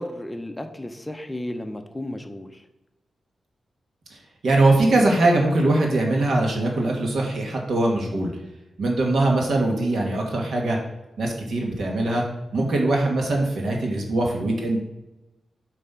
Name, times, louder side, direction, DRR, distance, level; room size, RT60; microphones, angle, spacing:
voice 1, 0.0-2.6, left 1 dB, 10° left, 6 dB, 0.5 m, -33 dB
voice 2, 4.1-8.3 8.8-10.8 11.2-12.2 12.5-14.8, right 2 dB, 70° right, 0 dB, 1.6 m, -22 dB
7.2 x 3.3 x 5.6 m, 1.0 s
wide cardioid pair, 115°, 0 cm